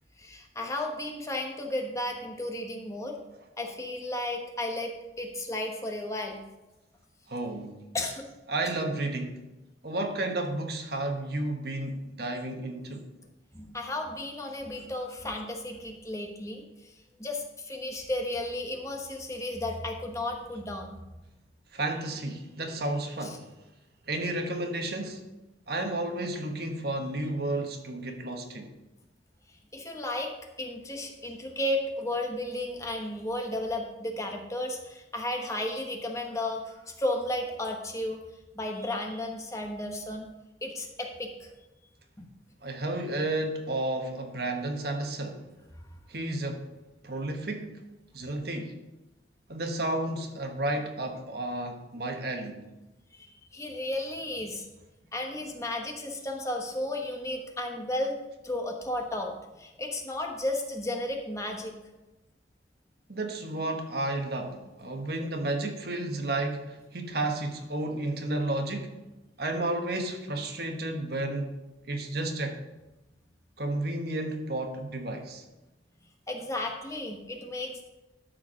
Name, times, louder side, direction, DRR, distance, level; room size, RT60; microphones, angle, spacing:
voice 1, 0.2-3.2 3.6-6.4 7.9-8.3 13.5-16.9 17.2-21.0 29.7-38.2 38.5-40.3 40.6-41.5 42.2-42.3 53.1-53.3 53.5-54.6 55.1-58.2 58.4-59.3 59.6-61.8 76.3-77.9, left 1 dB, 15° left, 2 dB, 1.2 m, -33 dB
voice 2, 7.3-7.8 8.5-9.4 9.8-13.1 21.7-23.5 24.1-25.2 25.7-28.7 42.6-45.5 46.1-46.7 47.0-47.8 48.1-48.8 49.5-52.7 63.1-68.9 69.4-71.5 71.8-72.6 73.6-75.4, right 2 dB, 60° right, 4 dB, 1.3 m, -32 dB
12.5 x 4.7 x 6.3 m, 1.0 s
head